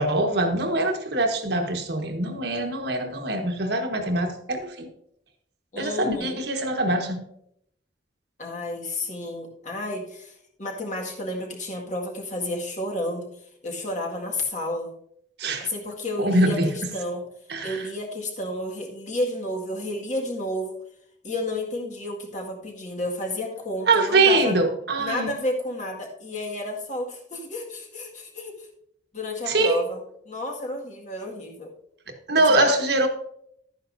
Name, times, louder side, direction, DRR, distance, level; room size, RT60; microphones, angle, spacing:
voice 1, 0.0-4.9 5.8-7.2 15.4-15.7 16.2-16.7 17.5-17.8 23.9-25.3 29.5-29.8 32.3-33.1, right 2 dB, 65° right, 1.4 m, -23 dB
voice 2, 5.7-6.4 8.4-13.3 13.6-14.9 15.6-16.6 16.9-17.3 17.6-20.8 21.2-24.5 25.0-28.7 29.1-30.0 30.3-31.7 32.3-32.7, left 1 dB, 45° left, 1.9 m, -31 dB
11.5 x 9.6 x 2.7 m
head